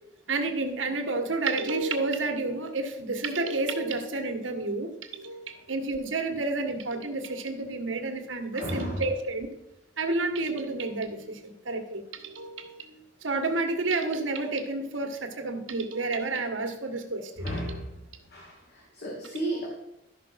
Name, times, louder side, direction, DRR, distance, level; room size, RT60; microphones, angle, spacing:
voice 1, 0.3-9.5 10.0-17.8 19.2-19.4, right 3 dB, 85° right, 5 dB, 1.6 m, -30 dB
voice 2, 8.5-9.0 17.4-17.8 18.3-19.7, right 1 dB, 60° left, -2 dB, 2.2 m, -33 dB
13.0 x 6.0 x 5.7 m, 0.87 s
head